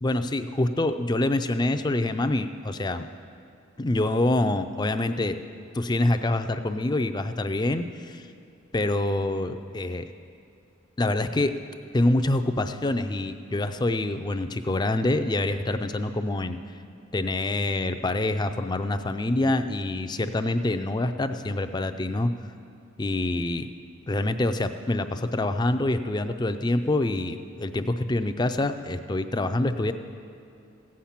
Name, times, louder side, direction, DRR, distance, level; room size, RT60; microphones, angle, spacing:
voice 1, 0.0-3.1 3.8-5.4 5.7-8.3 8.7-10.1 11.0-11.6 11.9-16.6 17.1-22.3 23.0-23.7 24.1-29.9, left 2 dB, 20° left, 9 dB, 0.4 m, -26 dB
16.0 x 8.6 x 5.8 m, 2.4 s
head